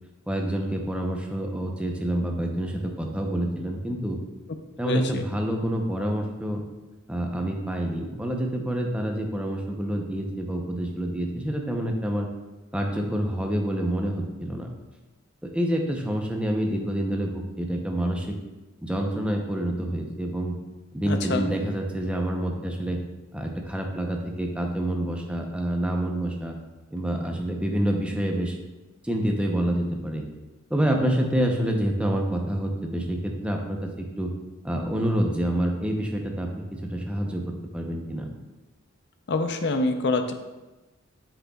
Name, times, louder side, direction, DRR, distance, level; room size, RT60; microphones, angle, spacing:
voice 1, 0.3-4.2 4.8-6.6 7.1-12.3 12.7-14.7 15.4-18.4 18.8-20.6 20.9-23.0 23.3-26.5 26.9-28.6 29.0-30.2 30.7-34.3 34.6-37.4 37.7-38.3, right 1 dB, 5° right, 1 dB, 0.7 m, -27 dB
voice 2, 4.8-5.2 21.1-21.5 39.3-40.3, left 2 dB, 55° left, 7 dB, 0.6 m, -25 dB
8.0 x 6.5 x 2.3 m, 1.1 s
head